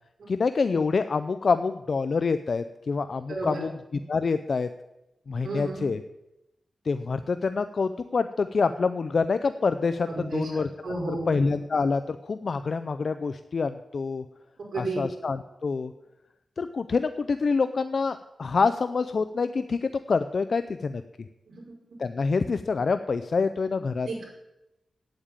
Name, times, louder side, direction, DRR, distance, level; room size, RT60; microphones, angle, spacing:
voice 1, 0.3-3.7 4.1-4.7 5.3-6.0 6.9-10.7 11.1-14.2 14.8-15.9 16.6-21.0 22.0-24.2, left 4 dB, 50° left, 11 dB, 0.4 m, -26 dB
voice 2, 3.3-3.7 5.4-5.9 10.1-11.4 14.7-15.0 21.5-21.7 24.0-24.2, right 2 dB, 75° right, -2 dB, 4.9 m, -32 dB
8.8 x 8.7 x 9.0 m, 0.92 s
wide cardioid pair, 145°, 0 cm